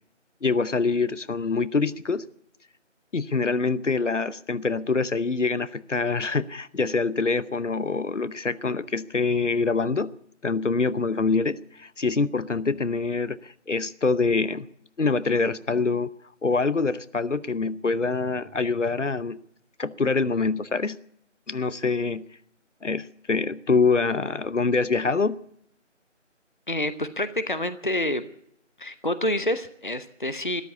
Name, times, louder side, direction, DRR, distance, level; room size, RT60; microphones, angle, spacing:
voice 1, 0.4-2.2 3.1-10.1 10.4-14.7 15.0-16.1 16.4-19.4 19.8-21.0 21.5-22.2 22.8-25.4, left 4 dB, 70° left, 0.9 m, -25 dB
voice 2, 26.7-28.3 28.8-30.6, left 1 dB, 40° left, 0.7 m, -27 dB
13.5 x 12.5 x 8.4 m
figure-of-eight pair, 175°, 38 cm